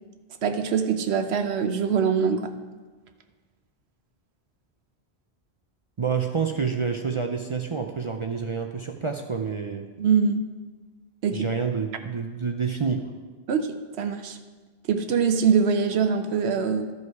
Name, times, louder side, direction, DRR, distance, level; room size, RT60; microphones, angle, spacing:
voice 1, 0.4-2.5 10.0-10.5 11.2-11.5 13.5-14.4 14.9-16.9, right 6 dB, 80° right, 8 dB, 1.0 m, -23 dB
voice 2, 6.0-9.9 11.3-13.0, right 5 dB, 40° right, 4 dB, 0.5 m, -28 dB
13.5 x 5.4 x 4.7 m, 1.4 s
omnidirectional pair, 1.1 m